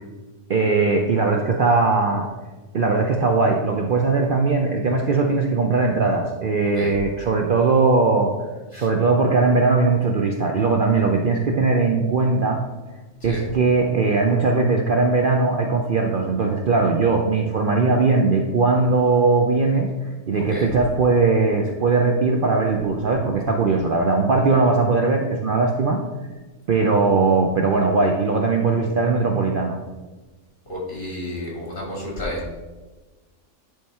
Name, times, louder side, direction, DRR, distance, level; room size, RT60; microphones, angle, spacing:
voice 1, 0.5-2.3 2.7-8.3 8.7-12.6 13.2-19.9 20.3-26.0 26.7-29.8, right 3 dB, 50° right, 2 dB, 0.7 m, -19 dB
voice 2, 20.4-20.7 30.7-32.6, left 1 dB, 40° left, -5 dB, 2.8 m, -31 dB
10.5 x 3.7 x 4.3 m, 1.2 s
omnidirectional pair, 1.3 m